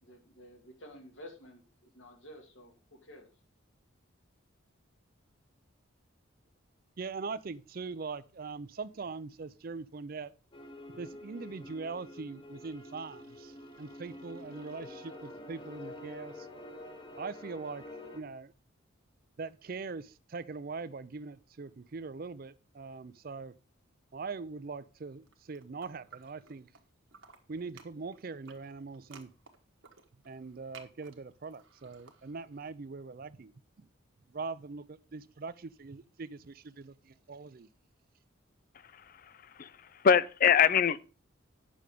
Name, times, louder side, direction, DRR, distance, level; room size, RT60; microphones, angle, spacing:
voice 1, 0.0-3.3, equal, 70° left, 2.2 m, -52 dB
voice 2, 7.0-10.3 10.9-16.5 17.2-17.8 18.1-18.5 19.4-23.5 24.1-26.7 27.5-29.3 30.2-33.5 33.8-33.9 34.3-37.7, right 4 dB, 45° right, 0.5 m, -42 dB
sound 1, 10.5-18.2, left 1 dB, 25° left, 1.1 m, -47 dB
sound 2, 25.2-26.8 27.1-32.7, right 6 dB, 70° right, 1.3 m, -56 dB
voice 3, 40.0-41.0, left 7 dB, 45° left, 0.4 m, -23 dB
8.6 x 6.3 x 5.0 m
head